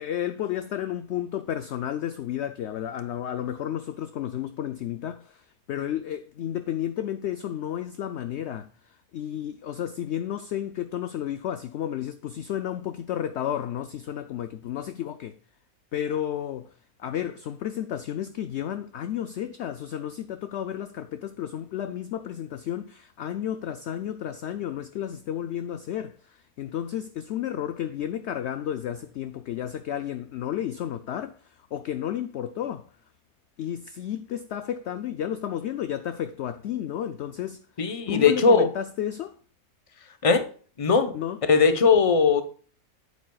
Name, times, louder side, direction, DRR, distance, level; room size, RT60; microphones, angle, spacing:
voice 1, 0.0-15.4 15.9-16.7 17.0-32.9 33.6-37.6 38.1-39.4 41.1-41.4, left 10 dB, 65° left, 0.7 m, -32 dB
voice 2, 37.8-38.7 40.2-40.5 40.8-41.2 41.5-42.4, left 5 dB, 25° left, 0.8 m, -19 dB
9.0 x 8.3 x 2.3 m
omnidirectional pair, 1.6 m